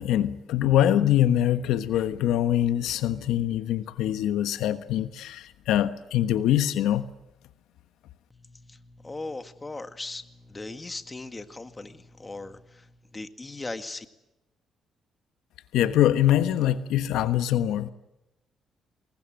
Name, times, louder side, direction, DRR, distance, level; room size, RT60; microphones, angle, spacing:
voice 1, 0.0-7.1 15.7-17.9, left 11 dB, 90° left, 11 dB, 1.2 m, -24 dB
voice 2, 8.3-14.1, left 2 dB, 20° left, 9 dB, 2.0 m, -39 dB
26.5 x 22.0 x 7.7 m, 0.94 s
cardioid pair, 90°, 0 cm